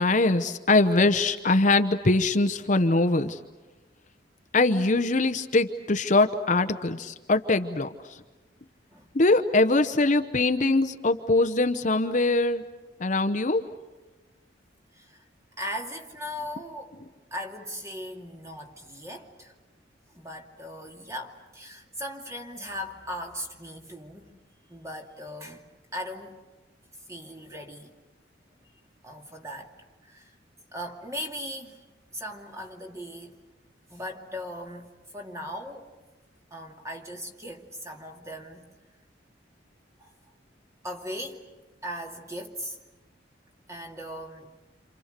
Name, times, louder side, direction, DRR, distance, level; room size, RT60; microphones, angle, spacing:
voice 1, 0.0-3.4 4.5-7.9 9.1-12.6 13.0-13.6, left 2 dB, 40° left, 8 dB, 0.9 m, -22 dB
voice 2, 15.6-17.0 17.3-19.5 20.1-24.4 24.7-25.7 25.9-26.4 27.1-27.9 29.0-29.7 30.0-30.3 30.7-31.8 32.1-33.4 33.9-35.9 36.5-38.6 40.0-40.1 40.8-41.4 41.8-42.8 43.7-44.6, equal, 15° right, 2 dB, 2.5 m, -38 dB
28.5 x 28.0 x 6.7 m, 1.2 s
head